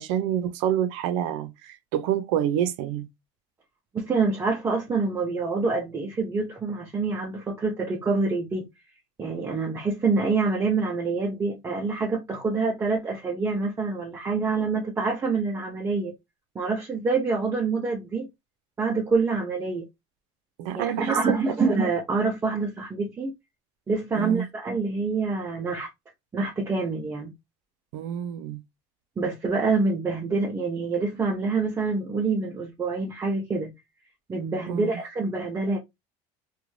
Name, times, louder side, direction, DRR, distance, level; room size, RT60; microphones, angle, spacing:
voice 1, 0.0-3.1 20.6-21.2 24.2-24.5 27.9-28.6 34.7-34.9, right 10 dB, 80° right, 0.5 m, -27 dB
voice 2, 3.9-8.7 9.2-16.1 16.6-18.3 18.8-19.9 20.8-23.3 23.9-25.9 26.3-27.3 29.2-33.7 34.3-35.8, right 4 dB, 15° right, 0.4 m, -26 dB
2.6 x 2.2 x 3.0 m
cardioid pair, 155°, 14 cm